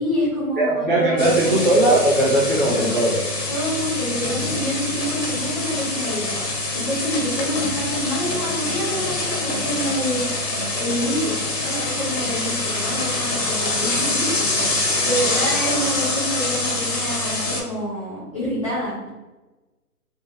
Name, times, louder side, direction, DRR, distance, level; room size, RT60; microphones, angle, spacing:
voice 1, 0.0-1.5 2.7-3.0 3.5-10.2 10.8-11.3 11.6-19.1, equal, 20° left, -12 dB, 0.7 m, -27 dB
voice 2, 0.6-3.2, right 1 dB, 35° right, -8 dB, 0.4 m, -18 dB
sound 1, 1.2-17.6, left 2 dB, 85° left, 1.5 m, -25 dB
3.5 x 2.9 x 2.6 m, 1.1 s
hypercardioid pair, 165°, 48 cm